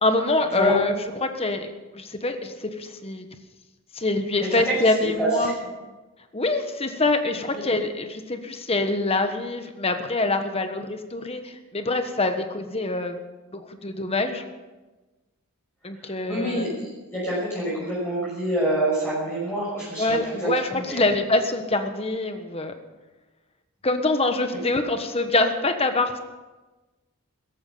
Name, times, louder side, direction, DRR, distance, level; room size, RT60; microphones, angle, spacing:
voice 1, 0.0-1.7 1.9-3.3 3.9-5.6 6.3-13.1 13.5-14.4 15.8-16.7 20.0-22.7 23.8-26.2, left 2 dB, 25° left, 7 dB, 1.3 m, -25 dB
voice 2, 16.3-21.0, right 1 dB, 10° left, -8 dB, 6.1 m, -27 dB
17.0 x 14.5 x 5.7 m, 1.2 s
head